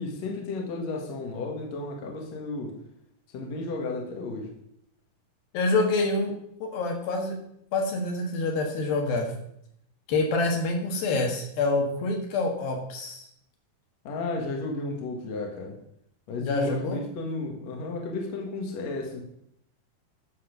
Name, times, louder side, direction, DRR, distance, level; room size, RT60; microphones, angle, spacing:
voice 1, 0.0-2.7 3.3-4.5 14.0-15.8 16.3-19.2, left 3 dB, 55° left, 0 dB, 2.8 m, -33 dB
voice 2, 5.5-7.4 7.7-9.3 10.1-13.3 16.4-17.0, left 3 dB, 80° left, 2 dB, 3.5 m, -27 dB
11.5 x 5.7 x 6.7 m, 0.74 s
omnidirectional pair, 4.1 m